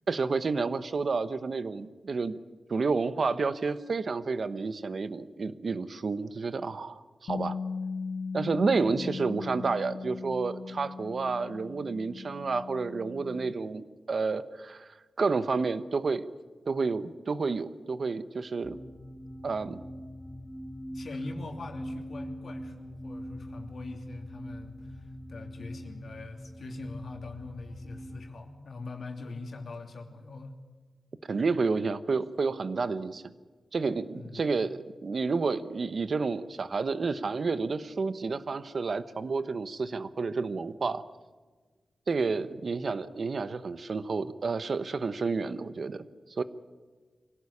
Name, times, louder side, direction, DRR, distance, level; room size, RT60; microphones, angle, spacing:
voice 1, 0.1-2.4 2.7-7.6 8.3-14.9 15.2-16.3 16.7-18.8 19.4-19.8 31.3-33.2 33.7-41.0 42.1-46.0 46.4-46.5, right 4 dB, 50° right, 12 dB, 1.1 m, -30 dB
Bass guitar, 7.3-13.5, left 4 dB, 75° left, 0.6 m, -38 dB
sound 1, 18.6-28.3, equal, 5° right, 2.6 m, -42 dB
voice 2, 20.9-30.6 34.1-34.7 42.4-42.7, left 3 dB, 55° left, 3 dB, 2.8 m, -43 dB
24.5 x 17.5 x 8.6 m, 1.4 s
wide cardioid pair, 145°, 0 cm